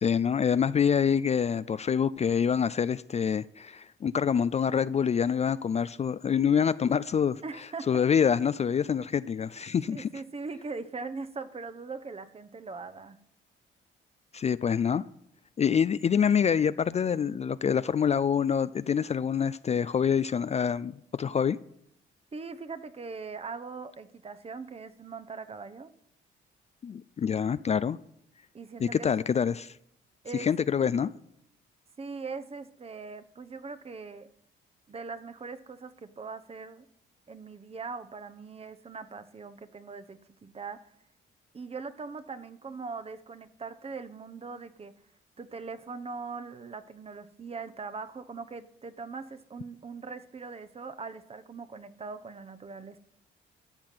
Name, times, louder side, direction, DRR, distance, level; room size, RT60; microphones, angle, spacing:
voice 1, 0.0-7.4 7.9-10.1 14.3-15.0 15.6-21.6 26.8-28.0 28.8-29.7 30.3-31.1, left 7 dB, 35° left, 0.4 m, -26 dB
voice 2, 7.4-8.0 9.9-13.2 22.3-25.9 28.5-29.1 30.2-30.5 32.0-34.3 34.9-36.8 37.3-40.9 41.5-44.9 45.4-53.0, right 4 dB, 30° right, 1.0 m, -41 dB
13.5 x 5.8 x 9.3 m
cardioid pair, 90°, 20 cm